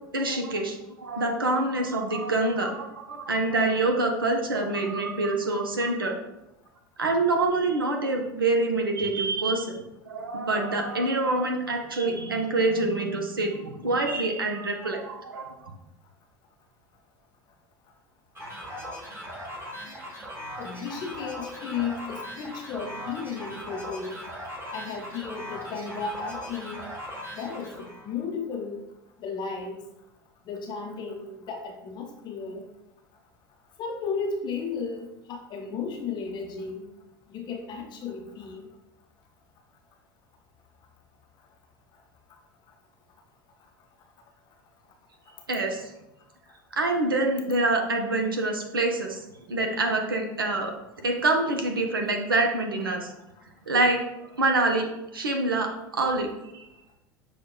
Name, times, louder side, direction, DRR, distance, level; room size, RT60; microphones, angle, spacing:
voice 1, 0.1-6.2 7.0-9.8 10.0-15.5 45.5-45.9 46.7-50.7 51.0-53.1 53.7-54.0 54.4-54.9 55.1-56.3 56.5-56.7, right 2 dB, 85° right, 3 dB, 0.4 m, -26 dB
sound 1, 18.3-28.1, equal, 20° right, 1.4 m, -39 dB
voice 2, 20.6-24.2 24.7-26.8 27.4-28.8 29.2-29.8 30.5-32.6 33.8-36.8 37.3-38.6, left 5 dB, 40° left, 3 dB, 0.5 m, -34 dB
6.0 x 2.1 x 2.3 m, 0.89 s
figure-of-eight pair, 70°, 11 cm